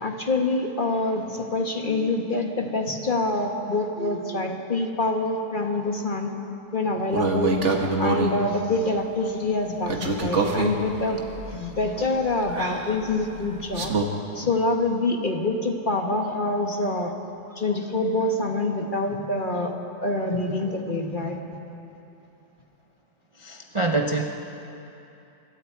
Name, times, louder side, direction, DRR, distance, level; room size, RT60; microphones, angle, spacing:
voice 1, 0.0-6.3 6.7-7.6 8.0-13.9 14.3-17.1 17.5-19.7 20.0-21.4, left 2 dB, 30° left, 3 dB, 1.4 m, -26 dB
sound 1, 7.1-8.4 9.9-14.1, right 3 dB, 45° right, 1.8 m, -26 dB
voice 2, 23.4-24.2, right 3 dB, 30° right, 3 dB, 0.6 m, -25 dB
25.5 x 22.0 x 4.6 m, 2.8 s
omnidirectional pair, 1.7 m